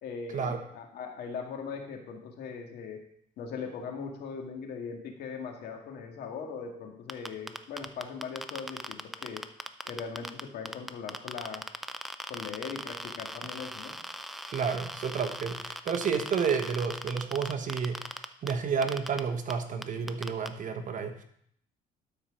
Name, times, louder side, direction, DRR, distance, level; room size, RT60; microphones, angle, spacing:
voice 1, 0.0-3.0 3.4-9.4 9.9-10.3 10.5-11.6 12.3-14.0, left 5 dB, 70° left, 2 dB, 1.9 m, -40 dB
sound 1, 7.1-10.4 10.7-18.5 18.8-19.2 19.5-19.6 19.8-20.5, equal, ahead, 0.5 m, -38 dB
voice 2, 14.5-21.2, right 6 dB, 50° right, 7 dB, 1.2 m, -31 dB
12.0 x 4.5 x 5.2 m, 0.68 s
cardioid pair, 110°, 17 cm